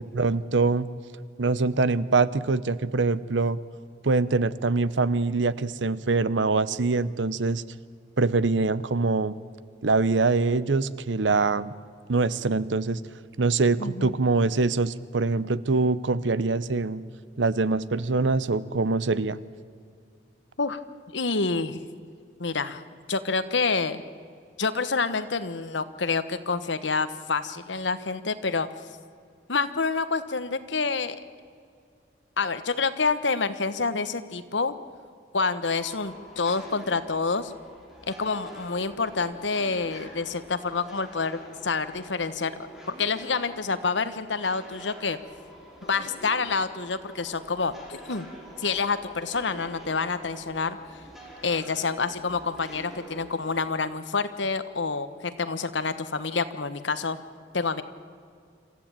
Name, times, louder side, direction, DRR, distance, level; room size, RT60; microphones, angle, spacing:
voice 1, 0.1-0.9 1.4-3.6 4.0-7.6 8.2-9.4 9.8-11.7 12.1-13.0 13.4-17.0 17.4-19.4, right 3 dB, 80° right, 17 dB, 0.8 m, -24 dB
voice 2, 13.8-14.1 20.6-20.8 21.1-21.8 22.4-24.0 24.6-28.7 29.5-31.2 32.4-34.7 35.3-37.5 38.1-42.5 42.9-45.2 45.8-48.3 48.6-51.0 51.4-57.2 57.5-57.8, left 4 dB, 80° left, 12 dB, 1.2 m, -28 dB
sound 1, 35.7-53.7, equal, ahead, 5.2 m, -46 dB
27.0 x 14.5 x 8.9 m, 2.2 s
head